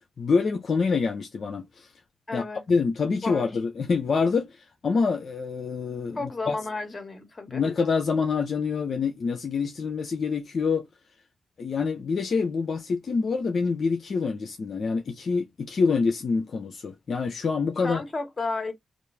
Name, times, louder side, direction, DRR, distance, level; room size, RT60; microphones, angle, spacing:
voice 1, 0.2-1.9 2.3-6.5 7.5-10.8 11.6-18.0, left 5 dB, 60° left, 0.6 m, -26 dB
voice 2, 2.3-2.6 3.2-3.5 6.1-7.6 17.8-18.7, left 3 dB, 35° left, 1.5 m, -32 dB
3.0 x 2.5 x 3.3 m
cardioid pair, 65°, 0 cm